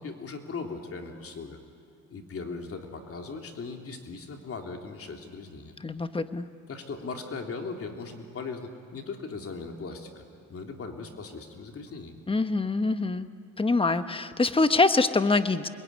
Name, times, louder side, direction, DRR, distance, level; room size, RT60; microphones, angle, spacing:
voice 1, 0.0-1.6 2.1-5.7 6.7-10.2 10.5-12.2, left 4 dB, 50° left, 3 dB, 3.3 m, -38 dB
voice 2, 5.8-6.4 12.3-13.3 13.6-15.7, left 3 dB, 20° left, 10 dB, 1.2 m, -24 dB
27.0 x 22.0 x 9.6 m, 2.2 s
cardioid pair, 90°, 30 cm